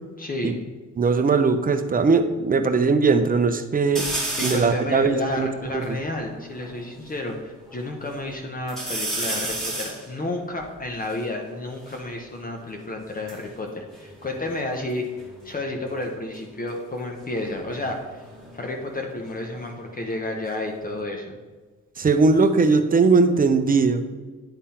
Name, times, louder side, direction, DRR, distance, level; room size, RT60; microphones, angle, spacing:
voice 1, 0.2-0.5 4.4-15.1 15.4-18.2 18.5-21.4, left 2 dB, 30° left, 2 dB, 1.0 m, -31 dB
voice 2, 1.0-4.1 4.4-5.5 5.9-6.0 22.0-24.2, right 4 dB, 30° right, 8 dB, 0.7 m, -19 dB
sound 1, 4.0-4.8 5.4-5.5 5.6-7.2 7.7-8.3 8.7-12.1 13.0-14.9 15.2-15.7 17.2-19.9 20.2-21.0, right 1 dB, ahead, 1.9 m, -33 dB
9.9 x 3.6 x 4.3 m, 1.4 s
cardioid pair, 90°, 30 cm